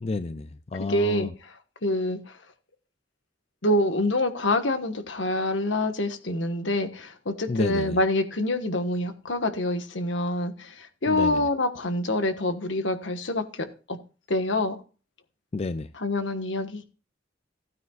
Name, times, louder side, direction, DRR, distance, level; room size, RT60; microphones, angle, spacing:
voice 1, 0.0-1.3 7.5-8.0 11.1-11.4 15.5-15.9, left 3 dB, 35° left, 0.4 m, -30 dB
voice 2, 0.8-2.4 3.6-14.0 14.3-14.8 15.9-16.8, left 1 dB, 75° left, 1.4 m, -26 dB
16.0 x 9.4 x 2.4 m
head